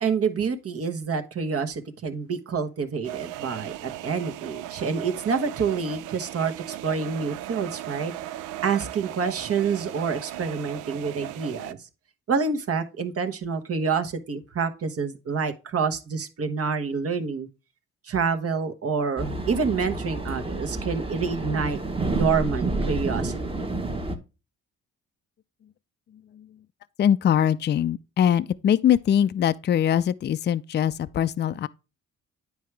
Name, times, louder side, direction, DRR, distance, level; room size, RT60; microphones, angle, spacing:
voice 1, 0.0-11.8 12.3-17.5 18.0-21.8 22.1-23.3, right 5 dB, 50° right, 1.1 m, -27 dB
sound 1, 3.0-11.7, right 14 dB, 85° right, 0.5 m, -37 dB
sound 2, 19.2-24.2, right 2 dB, 20° right, 1.1 m, -29 dB
voice 2, 26.1-26.6 27.0-31.7, left 9 dB, 35° left, 0.4 m, -23 dB
9.4 x 4.8 x 3.3 m
cardioid pair, 90°, 30 cm